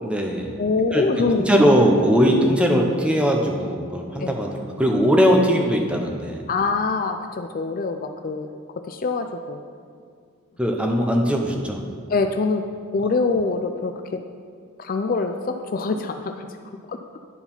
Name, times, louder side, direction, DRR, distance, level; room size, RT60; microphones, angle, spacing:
voice 1, 0.0-0.5 0.9-4.5 4.8-6.4 10.6-11.8, equal, 5° right, 1 dB, 0.8 m, -20 dB
voice 2, 0.6-1.5 2.3-2.4 4.2-4.4 6.5-8.5 8.8-9.6 12.1-12.6 12.9-14.2 14.8-16.5 16.9-17.0, left 4 dB, 40° left, 6 dB, 0.4 m, -24 dB
10.5 x 4.7 x 5.6 m, 2.2 s
head